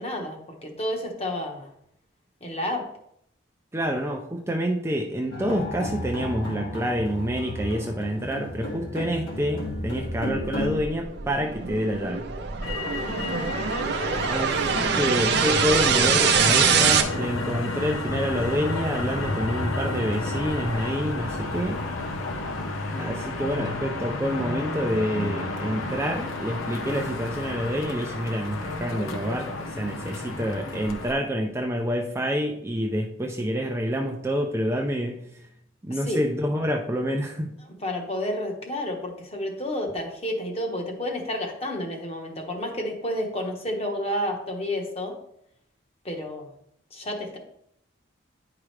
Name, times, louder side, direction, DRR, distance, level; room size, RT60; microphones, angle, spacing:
voice 1, 0.0-1.7 2.4-2.8 13.0-14.4 35.9-36.2 37.7-45.1 46.0-46.5 46.9-47.4, left 1 dB, 30° left, 2 dB, 1.1 m, -31 dB
voice 2, 3.7-12.3 14.3-21.8 23.0-35.3 35.8-37.5, equal, 15° right, 2 dB, 0.5 m, -28 dB
sound 1, 5.3-10.8, left 1 dB, 70° left, 2.0 m, -33 dB
sound 2, 10.0-17.0, right 6 dB, 55° right, 0.7 m, -24 dB
Motor vehicle (road), 12.6-31.1, left 2 dB, 90° left, 0.9 m, -31 dB
9.8 x 4.8 x 3.3 m, 0.73 s
head